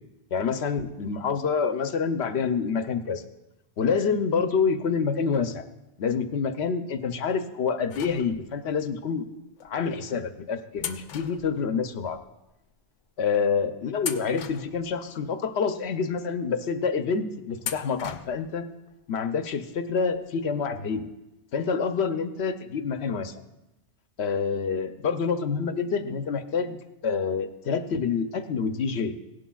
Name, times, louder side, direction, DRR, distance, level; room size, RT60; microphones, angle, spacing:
voice 1, 0.3-3.2 3.8-5.6 6.0-9.3 9.6-12.2 13.2-18.7 19.1-21.1 21.5-23.3 24.2-29.2, left 5 dB, 70° left, 9 dB, 0.9 m, -27 dB
sound 1, 7.9-8.7 9.6-9.7 10.8-12.2 12.5-12.6 13.3-13.6 14.0-15.3 15.8-15.9 17.6-18.6 18.9-19.0 20.1-20.2 20.5-20.6, left 8 dB, 90° left, 1.0 m, -38 dB
17.0 x 11.5 x 2.3 m, 0.98 s
omnidirectional pair, 1.2 m